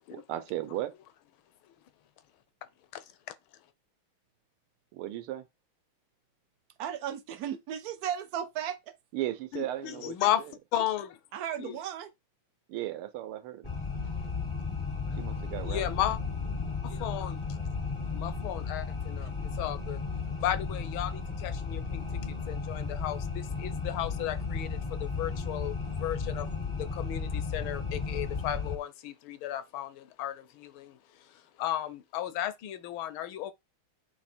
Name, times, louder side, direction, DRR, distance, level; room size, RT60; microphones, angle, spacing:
voice 1, 0.1-0.9 4.9-5.4 9.1-10.5 12.7-13.7 15.2-15.8, right 14 dB, 85° right, 1.7 m, -36 dB
voice 2, 6.8-8.9 11.3-12.1 19.2-19.3, right 9 dB, 70° right, 0.9 m, -35 dB
voice 3, 9.5-11.2 11.6-11.8 15.1-15.2 15.6-16.2 16.8-17.4 18.1-19.3 19.6-20.0 20.4-22.0 22.5-26.5 26.9-31.0 31.6-33.5, left 12 dB, 75° left, 1.5 m, -34 dB
sound 1, 13.6-28.8, left 5 dB, 30° left, 0.5 m, -34 dB
8.2 x 3.2 x 4.3 m
omnidirectional pair, 2.3 m